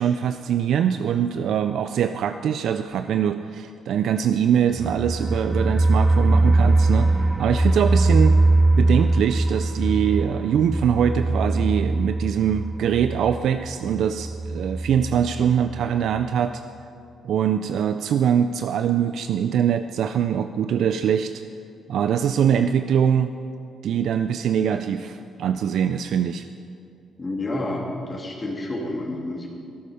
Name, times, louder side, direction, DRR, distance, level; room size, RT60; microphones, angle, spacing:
voice 1, 0.0-7.1 7.4-8.4 8.8-16.6 17.2-21.3 21.9-23.3 23.8-26.4, right 8 dB, 70° right, 9 dB, 0.4 m, -23 dB
sound 1, 4.7-15.4 15.7-15.8 16.2-16.3, right 2 dB, 20° right, 0.7 m, -21 dB
voice 2, 27.2-29.5, left 1 dB, 30° left, -1 dB, 2.5 m, -29 dB
17.0 x 8.6 x 5.0 m, 2.5 s
cardioid pair, 90°, 0 cm